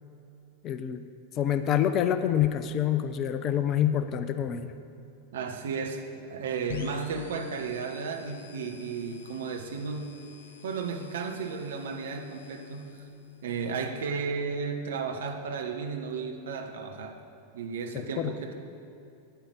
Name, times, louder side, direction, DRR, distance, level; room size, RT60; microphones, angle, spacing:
voice 1, 0.6-1.0 1.4-4.7 18.2-18.3, left 10 dB, 35° left, 10 dB, 0.7 m, -26 dB
voice 2, 5.3-10.2 10.6-13.0 13.4-17.2 17.5-18.5, right 5 dB, 60° right, 4 dB, 1.2 m, -34 dB
sound 1, 6.7-14.3, left 7 dB, 60° left, 0.9 m, -45 dB
9.4 x 9.2 x 8.4 m, 2.7 s
figure-of-eight pair, 90°, 0 cm